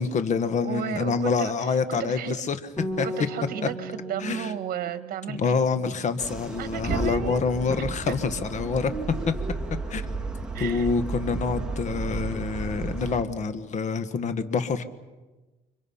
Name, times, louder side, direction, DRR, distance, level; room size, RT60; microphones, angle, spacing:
voice 1, 0.0-3.1 4.2-4.5 5.3-8.9 9.3-9.4 9.9-10.0 10.6-14.8, left 5 dB, 45° left, 10 dB, 1.6 m, -27 dB
voice 2, 0.6-1.5 1.9-2.4 3.0-5.6 6.6-7.5 8.0-8.1 10.5-11.0, right 9 dB, 60° right, 11 dB, 1.7 m, -34 dB
Bass guitar, 2.8-9.0, right 1 dB, 20° left, 3.5 m, -39 dB
sound 1, 6.2-13.2, right 3 dB, 5° right, 2.8 m, -32 dB
30.0 x 25.0 x 5.7 m, 1.2 s
cardioid pair, 110°, 17 cm